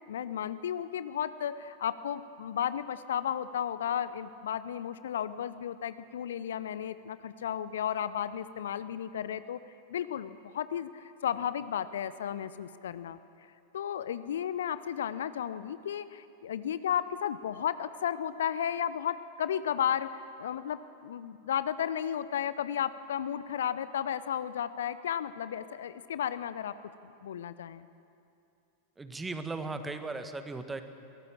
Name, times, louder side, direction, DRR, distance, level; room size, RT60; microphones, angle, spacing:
voice 1, 0.1-9.6 9.9-13.2 13.7-26.8 27.2-27.8, left 9 dB, 60° left, 14 dB, 0.6 m, -33 dB
voice 2, 29.0-30.8, right 3 dB, 10° right, 8 dB, 1.5 m, -37 dB
22.5 x 18.0 x 7.4 m, 2.6 s
figure-of-eight pair, 90°, 0 cm